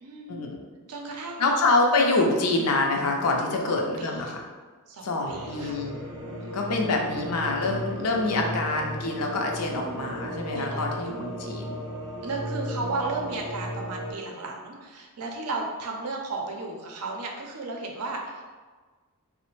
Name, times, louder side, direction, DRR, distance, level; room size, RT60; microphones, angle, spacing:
voice 1, 0.0-0.4 0.9-1.5 3.6-4.4 4.9-5.8 6.4-6.8 9.7-11.0 12.2-18.4, right 3 dB, 85° right, 1 dB, 0.5 m, -35 dB
voice 2, 1.4-4.4 5.0-5.9 6.5-11.8, left 2 dB, 85° left, 1 dB, 0.5 m, -26 dB
sound 1, 5.3-14.1, equal, 25° right, 0.5 m, -35 dB
3.2 x 2.0 x 3.1 m, 1.4 s
head